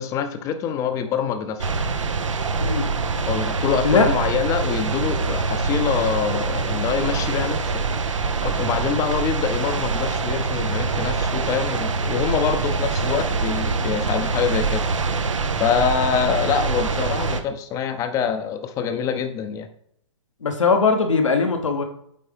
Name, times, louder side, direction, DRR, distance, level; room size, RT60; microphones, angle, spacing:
voice 1, 0.0-1.7 3.3-7.8 8.4-14.9 15.6-19.7, left 7 dB, 20° left, 8 dB, 0.5 m, -25 dB
sound 1, 1.6-17.4, right 4 dB, 85° right, 0.7 m, -24 dB
voice 2, 20.4-21.8, left 4 dB, 85° left, 5 dB, 1.0 m, -20 dB
8.8 x 3.4 x 3.4 m, 0.71 s
hypercardioid pair, 135°, 16 cm